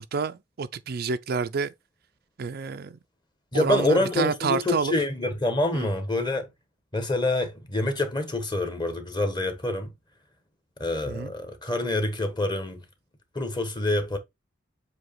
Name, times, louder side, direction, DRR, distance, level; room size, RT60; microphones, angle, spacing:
voice 1, 0.0-1.7 2.4-3.0 3.5-4.9 5.7-5.9 11.0-11.3, right 5 dB, 50° right, 0.4 m, -29 dB
voice 2, 3.5-6.5 6.9-9.9 10.8-12.8 13.3-14.2, left 2 dB, 20° left, 1.1 m, -26 dB
7.7 x 2.9 x 4.3 m
head